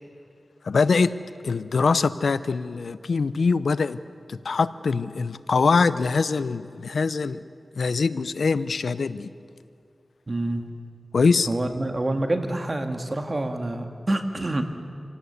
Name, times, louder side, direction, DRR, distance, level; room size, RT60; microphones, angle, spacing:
voice 1, 0.6-1.1 1.4-4.0 4.3-7.4 7.8-9.3 11.1-11.5, left 4 dB, 85° left, 15 dB, 0.7 m, -23 dB
voice 2, 10.3-10.7 11.5-14.6, right 1 dB, 40° right, 6 dB, 2.1 m, -27 dB
26.0 x 17.5 x 8.2 m, 2.4 s
wide cardioid pair, 60°, 0 cm